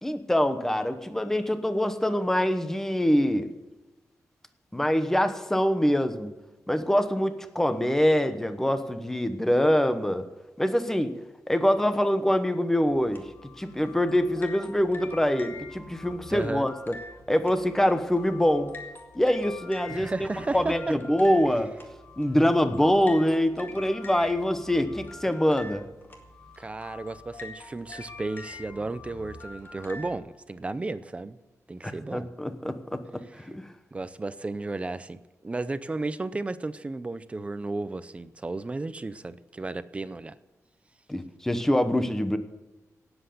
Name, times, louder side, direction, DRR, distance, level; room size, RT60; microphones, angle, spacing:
voice 1, 0.0-3.5 4.7-6.3 6.7-10.3 10.6-11.1 11.5-13.2 13.6-16.9 17.3-18.7 19.1-20.3 20.5-21.7 22.2-25.9 31.8-33.7 41.1-42.4, equal, 5° left, 9 dB, 1.0 m, -24 dB
sound 1, 12.9-30.2, left 3 dB, 40° left, 2.0 m, -45 dB
voice 2, 16.3-16.7 19.9-21.0 26.6-31.4 31.7-32.3 33.3-33.5 33.9-40.4, right 3 dB, 20° right, 14 dB, 0.6 m, -34 dB
18.0 x 8.0 x 6.9 m, 1.1 s
wide cardioid pair, 170°, 6 cm